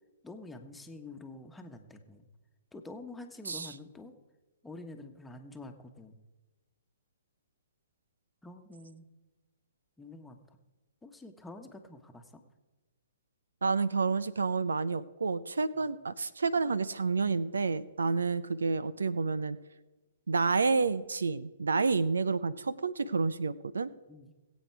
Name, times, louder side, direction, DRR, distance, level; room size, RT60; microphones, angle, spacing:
voice 1, 0.2-2.3 2.7-4.1 4.6-6.2 8.4-9.1 10.0-10.6 11.0-12.4 15.7-15.9 24.1-24.3, left 2 dB, 5° left, 5 dB, 1.3 m, -47 dB
voice 2, 13.6-19.6 20.3-23.9, right 4 dB, 75° right, 18 dB, 0.6 m, -29 dB
21.5 x 8.3 x 4.7 m, 1.2 s
figure-of-eight pair, 120°, 0 cm